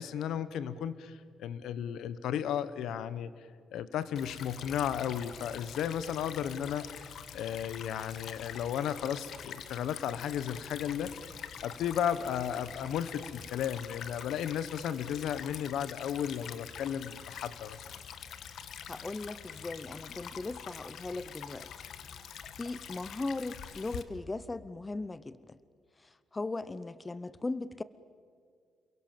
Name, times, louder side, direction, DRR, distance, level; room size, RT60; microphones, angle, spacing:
voice 1, 0.0-3.3 3.7-11.1 11.6-17.8, left 9 dB, 80° left, 15 dB, 1.1 m, -34 dB
Stream / Trickle dribble, 4.2-24.0, left 8 dB, 60° left, 1.4 m, -45 dB
voice 2, 18.9-21.7 22.6-25.6 26.0-27.8, left 3 dB, 20° left, 16 dB, 0.7 m, -38 dB
28.5 x 22.0 x 7.6 m, 2.2 s
cardioid pair, 130°, 0 cm